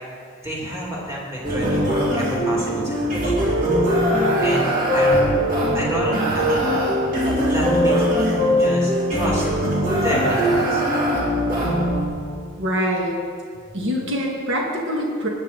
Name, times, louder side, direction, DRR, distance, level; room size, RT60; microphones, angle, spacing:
voice 1, 0.4-3.5 4.4-4.6 4.9-5.2 5.7-6.7 7.5-9.6 9.9-10.8, equal, 15° right, -5 dB, 2.7 m, -29 dB
sound 1, 1.4-12.1, equal, 40° right, 2.9 m, -20 dB
voice 2, 12.6-13.1 13.7-15.3, equal, 65° right, -1 dB, 2.0 m, -24 dB
19.0 x 8.3 x 4.1 m, 2.2 s
head